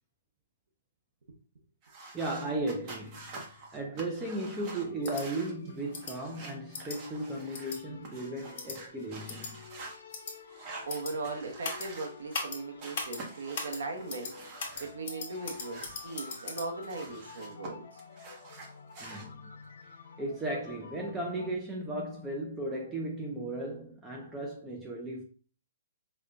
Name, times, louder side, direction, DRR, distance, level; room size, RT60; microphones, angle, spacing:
sound 1, 1.8-7.7 8.0-10.0 10.5-12.5 12.8-14.9 15.3-17.7 18.0-19.3, right 3 dB, 25° right, 0.8 m, -47 dB
voice 1, 2.1-3.4 3.7-9.7 19.0-19.5 20.2-25.2, right 1 dB, 10° right, 0.4 m, -36 dB
sound 2, 4.8-21.6, left 5 dB, 75° left, 0.7 m, -52 dB
sound 3, 5.0-5.2 5.9-6.1 6.7-7.0 7.5-7.8 8.6-8.8 9.3-9.5 10.1-10.3 10.9-11.1 11.6-11.9 12.3-12.6 12.9-13.2 13.5-13.8 14.1-14.3 14.6-16.7, left 4 dB, 45° left, 1.2 m, -38 dB
voice 2, 10.9-14.3 14.8-17.9, right 3 dB, 85° right, 0.8 m, -38 dB
5.0 x 2.2 x 2.4 m
hypercardioid pair, 165°, 0 cm